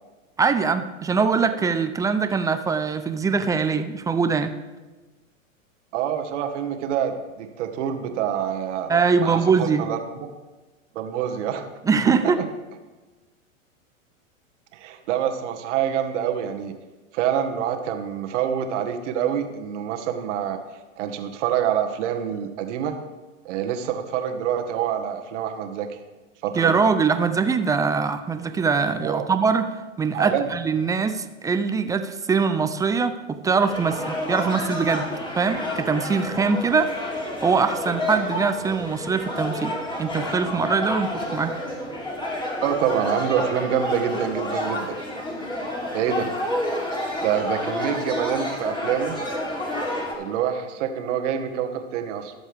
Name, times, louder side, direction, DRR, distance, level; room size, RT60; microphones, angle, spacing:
voice 1, 0.4-4.5 8.9-9.9 11.8-12.4 26.5-29.7 30.0-36.9 37.4-39.7 40.0-41.5, right 5 dB, 10° right, 9 dB, 0.4 m, -22 dB
voice 2, 5.9-8.9 9.2-10.0 10.9-11.6 12.0-12.1 14.7-16.7 17.1-20.6 21.0-23.0 23.4-26.0 26.4-26.8 29.0-29.3 30.1-30.5 42.6-45.0 45.9-46.3 47.2-49.2 50.2-52.3, right 9 dB, 60° right, 6 dB, 1.7 m, -26 dB
sound 1, 33.5-50.1, left 1 dB, 10° left, 3.1 m, -29 dB
21.0 x 7.2 x 3.5 m, 1.2 s
hypercardioid pair, 110°, 40 cm